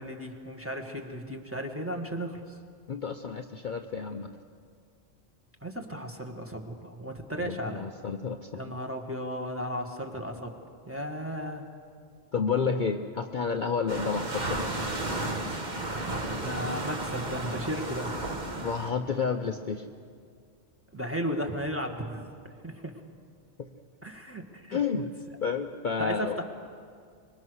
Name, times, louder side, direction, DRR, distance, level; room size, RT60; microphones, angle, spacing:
voice 1, 0.0-2.4 5.6-7.9 8.5-10.5 10.9-11.6 15.9-18.1 20.9-22.3 22.6-22.9 24.0-24.8 26.0-26.4, equal, 10° right, 2 dB, 1.7 m, -35 dB
voice 2, 2.9-4.3 7.4-8.8 12.3-14.8 18.6-19.9 23.6-23.7 24.7-25.1 25.4-26.4, left 5 dB, 45° left, 5 dB, 0.8 m, -30 dB
sound 1, 13.9-18.9, right 2 dB, 35° right, 1.6 m, -33 dB
24.5 x 22.5 x 6.4 m, 2.2 s
omnidirectional pair, 1.3 m